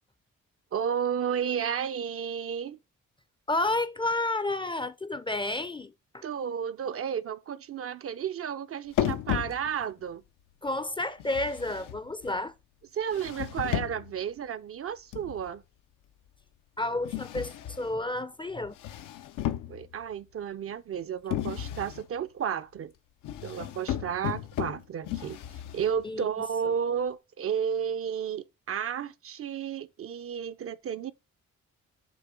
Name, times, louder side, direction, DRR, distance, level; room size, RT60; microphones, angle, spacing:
voice 1, 0.7-2.8 6.2-10.2 12.9-15.6 19.7-22.9 23.4-25.4 25.7-31.1, right 8 dB, 45° right, 0.4 m, -32 dB
voice 2, 3.5-6.2 10.6-12.5 16.8-17.5 17.8-18.8 26.0-26.3, left 2 dB, 15° left, 0.4 m, -30 dB
sound 1, 8.9-10.0 11.2-12.4 13.1-14.2 15.1-15.6 17.0-18.0 18.6-20.1 21.3-22.1 23.2-26.0, left 11 dB, 85° left, 0.5 m, -34 dB
6.9 x 2.8 x 4.9 m
supercardioid pair, 60°, 31 cm